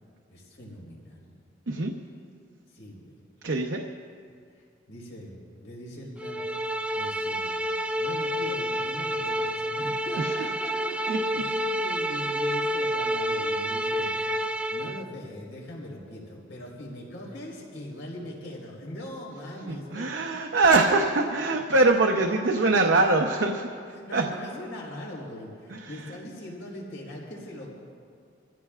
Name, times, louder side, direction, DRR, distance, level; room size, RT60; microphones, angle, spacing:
voice 1, 0.3-1.3 2.7-3.2 4.5-6.4 6.9-7.5 8.0-14.1 14.4-20.1 20.5-21.1 23.9-27.7, left 1 dB, 80° left, -4 dB, 4.2 m, -41 dB
voice 2, 3.4-3.8 10.2-10.3 11.1-11.2 19.7-23.7 24.1-24.2 25.7-25.8, right 3 dB, 70° right, 2 dB, 0.8 m, -23 dB
sound 1, 6.2-15.0, equal, 5° right, 0.4 m, -29 dB
25.0 x 15.0 x 2.4 m, 2.2 s
head